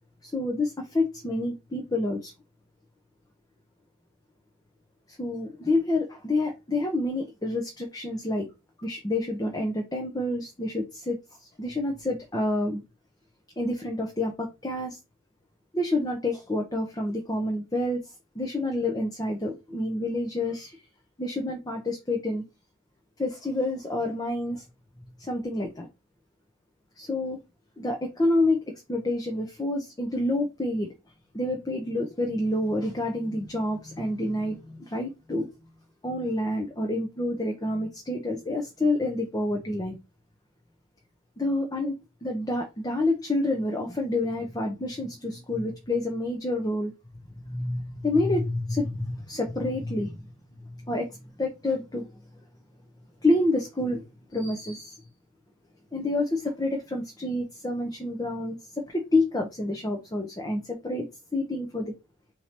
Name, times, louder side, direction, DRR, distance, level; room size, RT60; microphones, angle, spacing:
voice 1, 0.2-2.3 5.2-8.5 8.8-11.2 11.6-12.8 13.6-15.0 15.7-18.0 18.3-20.8 21.2-22.4 23.2-24.6 25.2-25.9 27.0-27.4 27.8-28.6 28.9-30.9 31.3-35.5 36.0-40.0 41.4-41.9 42.2-46.9 47.4-50.1 50.9-51.1 51.4-52.1 53.2-54.0 54.3-55.0 55.9-58.6 58.9-61.0 61.3-61.9, left 2 dB, 20° left, 0.7 m, -28 dB
3.7 x 3.0 x 4.2 m
head